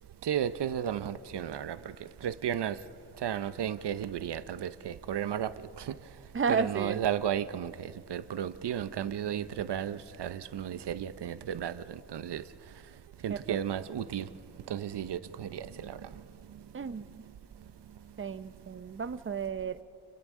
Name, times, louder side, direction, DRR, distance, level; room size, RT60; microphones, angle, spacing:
voice 1, 0.2-1.9 2.2-2.8 3.2-5.9 6.5-12.4 13.2-14.3 14.7-16.1, right 9 dB, 85° right, 0.7 m, -34 dB
voice 2, 6.3-7.0 13.3-13.6 16.7-17.1 18.2-19.8, right 5 dB, 30° right, 0.6 m, -32 dB
30.0 x 28.5 x 3.7 m
wide cardioid pair, 110°, 40 cm